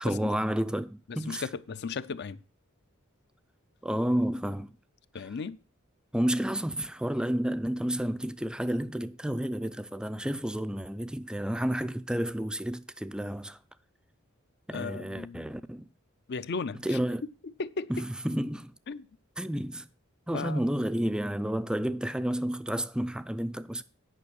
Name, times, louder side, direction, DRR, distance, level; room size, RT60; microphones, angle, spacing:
voice 1, 0.0-1.4 3.8-4.7 6.1-13.6 14.7-15.9 16.8-17.2 17.9-18.7 19.4-19.9 20.3-23.8, right 1 dB, 5° right, 0.4 m, -31 dB
voice 2, 1.1-2.4 5.1-5.6 14.7-15.5 16.3-17.0 17.4-18.0 18.9-19.1 20.3-20.6, left 4 dB, 55° left, 0.5 m, -36 dB
9.7 x 5.7 x 6.1 m
head